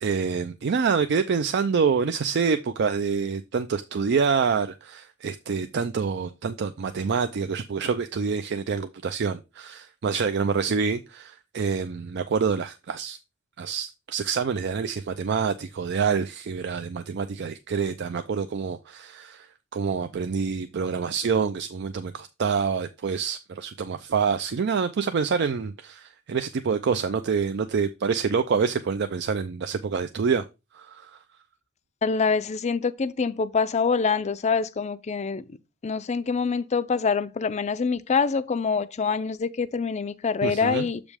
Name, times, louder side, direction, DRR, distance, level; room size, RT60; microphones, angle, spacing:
voice 1, 0.0-13.2 13.6-19.5 19.7-30.4 30.7-31.1 40.4-40.9, right 5 dB, 55° right, 0.4 m, -26 dB
voice 2, 32.0-35.4 35.8-41.0, left 5 dB, 35° left, 0.4 m, -25 dB
7.2 x 5.1 x 3.4 m
head